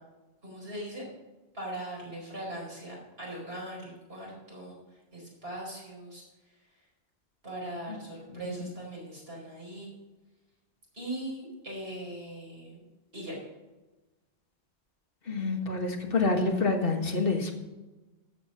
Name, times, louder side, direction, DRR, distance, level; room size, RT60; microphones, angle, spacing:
voice 1, 0.4-1.0 1.5-4.8 5.1-6.2 7.4-9.9 10.9-12.8 13.1-13.3, right 1 dB, 60° right, -3 dB, 5.0 m, -40 dB
voice 2, 15.3-17.7, left 3 dB, 55° left, 2 dB, 1.8 m, -27 dB
14.5 x 6.3 x 6.2 m, 1.1 s
omnidirectional pair, 1.1 m